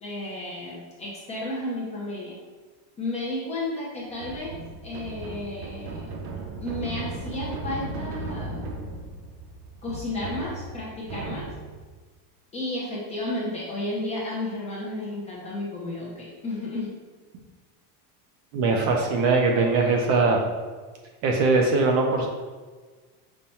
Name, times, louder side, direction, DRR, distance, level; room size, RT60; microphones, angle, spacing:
voice 1, 0.0-2.4 3.0-4.5 4.8-6.0 6.6-8.7 9.8-11.5 12.5-16.9, left 1 dB, 15° left, -6 dB, 0.5 m, -32 dB
sound 1, 4.1-11.9, right 2 dB, 70° right, 0.8 m, -36 dB
voice 2, 18.5-20.4 21.2-22.3, right 3 dB, 40° right, 2 dB, 0.5 m, -21 dB
5.5 x 2.1 x 4.2 m, 1.4 s
cardioid pair, 165°, 48 cm